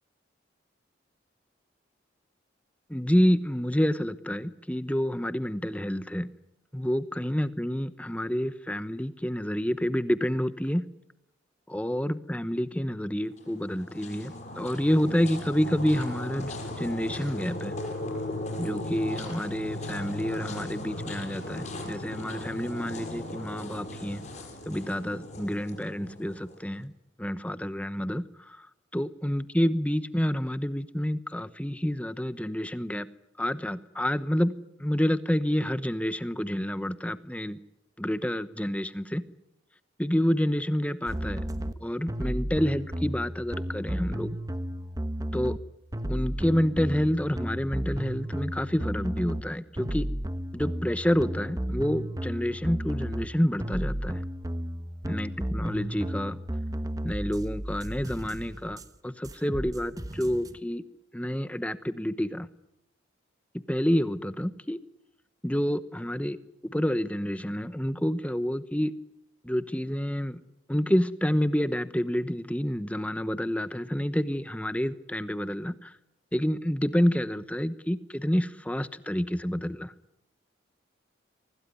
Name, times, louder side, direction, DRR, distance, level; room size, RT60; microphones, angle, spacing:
voice 1, 2.9-6.3 6.7-10.9 11.7-17.8 18.6-24.2 24.7-26.9 27.2-28.7 28.9-33.1 33.4-37.6 38.0-39.2 40.0-41.4 41.8-44.4 45.3-45.6 46.1-50.1 50.5-54.2 55.0-56.4 57.0-60.8 61.1-62.5 63.7-64.8 65.4-66.4 66.6-68.9 69.4-70.4 70.7-75.9 76.3-79.9, equal, 5° left, 14 dB, 0.9 m, -28 dB
sound 1, 13.3-26.6, left 1 dB, 40° left, 6.4 m, -37 dB
sound 2, 41.1-41.7 42.1-45.6 45.9-49.4 49.8-53.2 53.6-58.9 59.2-60.6, equal, 20° right, 1.1 m, -33 dB
25.0 x 18.0 x 9.4 m, 0.84 s
head